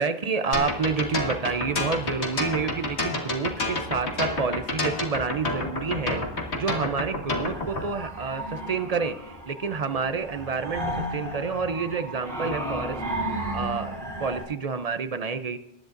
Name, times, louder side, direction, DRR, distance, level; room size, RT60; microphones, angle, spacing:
voice 1, 0.0-13.0 13.3-15.6, right 5 dB, 45° right, 10 dB, 0.5 m, -29 dB
sound 1, 0.5-7.8, left 2 dB, 75° left, 1.9 m, -28 dB
sound 2, 7.5-14.4, right 1 dB, 70° right, 6.4 m, -34 dB
23.0 x 10.5 x 2.6 m, 0.81 s
omnidirectional pair, 1.1 m